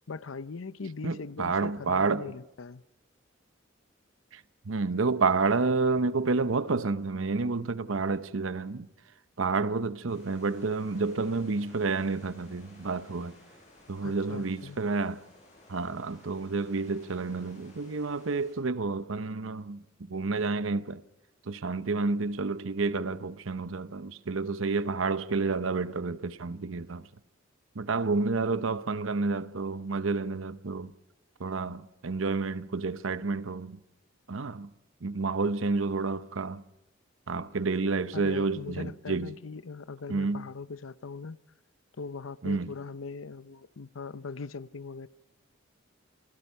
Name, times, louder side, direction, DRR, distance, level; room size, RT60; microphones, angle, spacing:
voice 1, 0.1-2.8 14.0-14.8 38.1-41.4 42.0-45.1, left 4 dB, 90° left, 0.7 m, -40 dB
voice 2, 1.0-2.3 4.3-8.9 9.4-13.3 13.9-15.2 15.7-21.0 21.5-27.0 27.7-30.9 31.4-33.8 34.3-34.7 35.0-36.6 37.3-39.3 40.1-40.5 42.4-42.7, right 4 dB, 85° right, 0.8 m, -30 dB
sound 1, 10.1-18.5, left 1 dB, 35° left, 7.5 m, -57 dB
28.0 x 20.0 x 5.6 m
head